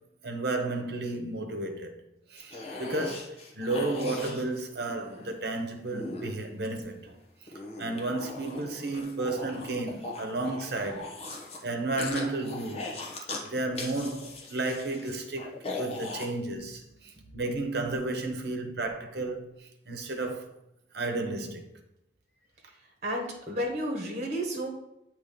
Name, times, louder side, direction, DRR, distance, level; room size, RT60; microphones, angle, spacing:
voice 1, 0.2-1.9 2.3-7.2 7.8-11.1 11.6-20.5 20.9-21.7, right 2 dB, 70° right, 1.0 m, -33 dB
sound 1, 2.4-5.3 5.9-6.9 7.5-11.6 12.0-13.5 13.7-16.3, left 3 dB, 35° left, 1.0 m, -39 dB
voice 2, 23.0-24.7, equal, 40° right, 1.4 m, -32 dB
8.0 x 3.2 x 5.1 m
head